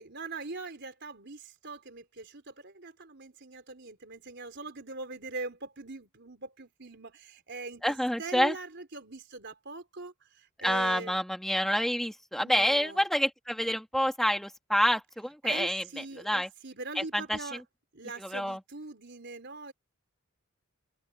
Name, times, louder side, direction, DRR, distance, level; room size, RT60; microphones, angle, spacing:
voice 1, 0.0-11.2 12.4-13.0 15.4-17.6 17.9-19.7, right 3 dB, 55° right, 4.2 m, -42 dB
voice 2, 7.8-8.5 10.6-16.5 17.0-17.4 18.2-18.6, equal, ahead, 2.2 m, -28 dB
head